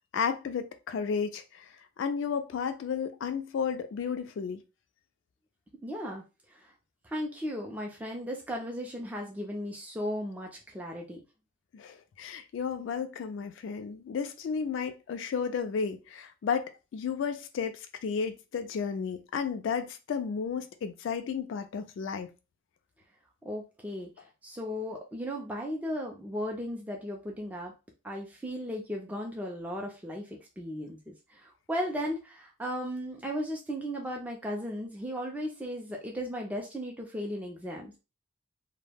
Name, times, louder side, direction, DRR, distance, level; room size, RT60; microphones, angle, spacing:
voice 1, 0.1-1.7 2.0-4.6 11.7-22.3, left 6 dB, 70° left, 0.3 m, -33 dB
voice 2, 5.8-6.2 6.5-6.7 7.0-11.2 23.4-27.7 28.0-38.0, equal, 10° right, 0.3 m, -36 dB
2.2 x 2.0 x 3.2 m
head